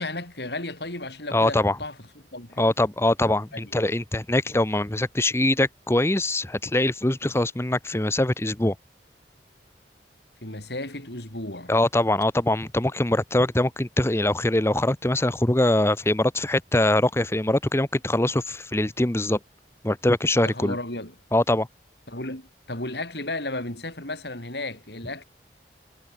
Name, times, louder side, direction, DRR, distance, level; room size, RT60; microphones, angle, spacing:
voice 1, 0.0-2.0 2.3-2.7 3.5-3.7 10.4-11.7 20.4-21.1 22.1-25.2, left 2 dB, 65° left, 7.3 m, -34 dB
voice 2, 1.3-1.8 2.6-8.7 11.7-19.4 19.8-20.8 21.3-21.7, left 1 dB, 15° left, 0.8 m, -23 dB
head